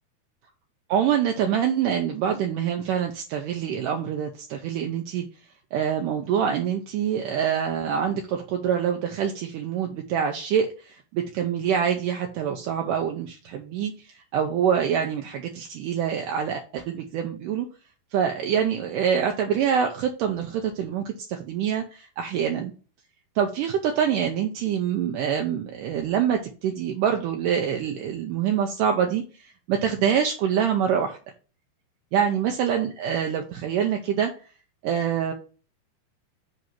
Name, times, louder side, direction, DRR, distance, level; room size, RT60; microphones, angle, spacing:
voice 1, 0.9-5.3 5.7-13.9 14.3-17.7 18.1-22.7 23.4-31.2 32.1-34.3 34.8-35.3, right 8 dB, 85° right, 3 dB, 1.9 m, -25 dB
7.7 x 2.7 x 5.8 m, 0.36 s
omnidirectional pair, 4.5 m